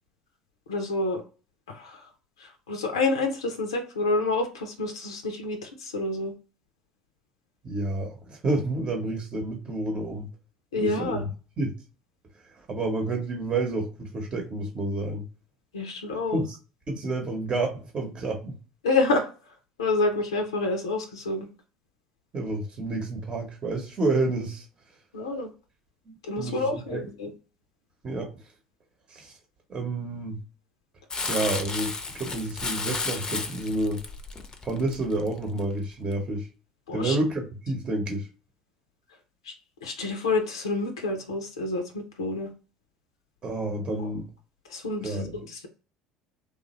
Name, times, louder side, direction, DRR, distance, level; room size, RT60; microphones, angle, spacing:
voice 1, 0.7-1.2 1.7-2.1 2.4-6.3 10.7-11.2 15.7-16.4 18.8-19.3 19.8-21.5 25.1-25.5 26.2-27.3 36.9-37.2 39.4-39.5 39.8-42.5 44.0-44.1 44.7-45.7, left 3 dB, 85° left, 0.5 m, -28 dB
voice 2, 7.6-10.3 10.8-11.3 11.6-11.7 12.6-15.2 16.3-16.6 16.9-18.6 22.3-24.7 26.1-27.0 28.0-28.3 29.1-29.3 29.7-30.4 31.3-34.0 34.6-36.5 36.9-38.3 43.4-44.3 45.0-45.4, right 2 dB, 35° right, 0.9 m, -29 dB
Crumpling crinkling, 31.1-35.6 36.1-36.2, left 4 dB, 30° left, 0.5 m, -33 dB
3.0 x 2.3 x 2.9 m
hypercardioid pair, 65°, 3 cm